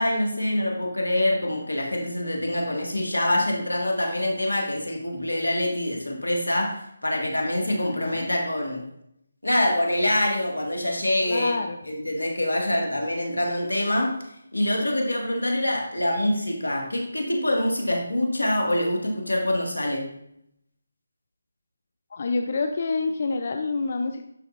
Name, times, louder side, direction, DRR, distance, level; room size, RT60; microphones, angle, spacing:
voice 1, 0.0-8.9 9.4-11.6 11.9-14.2 14.5-20.1, left 1 dB, 90° left, 1 dB, 1.8 m, -25 dB
voice 2, 7.8-8.3 11.3-11.8 22.1-24.2, left 3 dB, 45° left, 6 dB, 0.5 m, -27 dB
11.0 x 4.4 x 2.5 m, 0.76 s
figure-of-eight pair, 155°, 0 cm